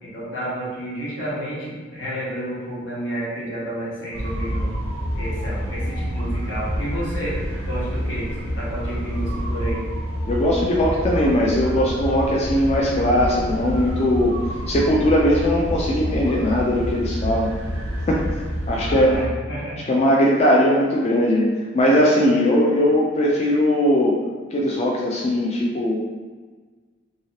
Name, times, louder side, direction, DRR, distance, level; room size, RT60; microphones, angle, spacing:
voice 1, 0.0-4.7 5.1-7.4 7.7-9.9 18.7-19.8, right 1 dB, 80° left, -8 dB, 1.3 m, -30 dB
sound 1, 4.1-19.3, equal, 85° right, 0.7 m, -28 dB
voice 2, 10.3-14.3 14.7-17.5 18.1-18.2 18.7-19.1 19.9-21.5 21.7-24.1 24.5-26.0, left 1 dB, 35° left, -3 dB, 0.3 m, -19 dB
3.0 x 2.7 x 2.8 m, 1.4 s
head